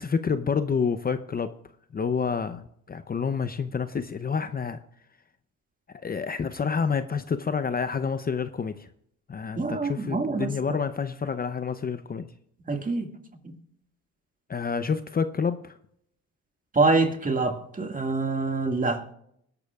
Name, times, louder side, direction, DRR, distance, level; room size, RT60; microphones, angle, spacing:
voice 1, 0.0-1.5 1.9-4.8 6.0-8.9 9.3-12.3 14.5-15.7, left 6 dB, 30° left, 0.7 m, -28 dB
voice 2, 9.6-10.8 12.6-13.1 13.4-13.6 16.7-19.1, right 3 dB, 25° right, 2.0 m, -26 dB
21.0 x 12.0 x 2.4 m
cardioid pair, 90°, 30 cm